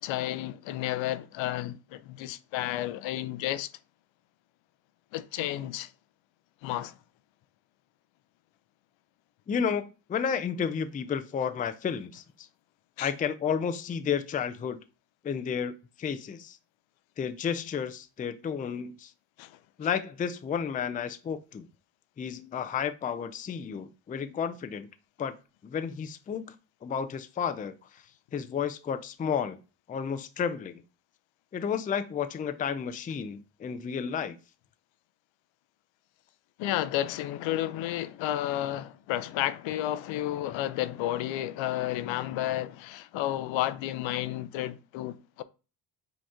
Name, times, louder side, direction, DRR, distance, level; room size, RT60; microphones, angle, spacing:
voice 1, 0.0-3.7 5.1-5.9 6.6-7.0 13.0-13.1 19.4-19.5 36.6-45.4, left 13 dB, 70° left, 0.6 m, -32 dB
voice 2, 9.5-12.2 13.0-14.8 15.2-16.6 17.2-19.1 19.8-21.7 22.2-24.9 25.2-25.3 25.6-26.6 26.8-28.0 28.3-29.6 29.9-30.8 31.5-34.4, left 7 dB, 20° left, 0.4 m, -32 dB
5.1 x 2.9 x 3.6 m
supercardioid pair, 80°, 48 cm